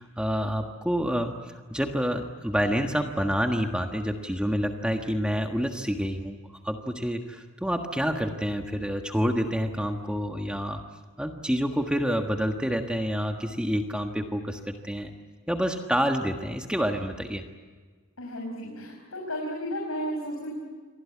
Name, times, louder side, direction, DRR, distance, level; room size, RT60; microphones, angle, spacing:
voice 1, 0.0-1.3 1.7-6.4 6.6-10.8 11.2-15.1 15.5-17.4, equal, 5° right, 3 dB, 1.5 m, -28 dB
voice 2, 18.2-20.6, equal, 75° left, 0 dB, 6.2 m, -33 dB
28.0 x 24.0 x 8.5 m, 1.5 s
head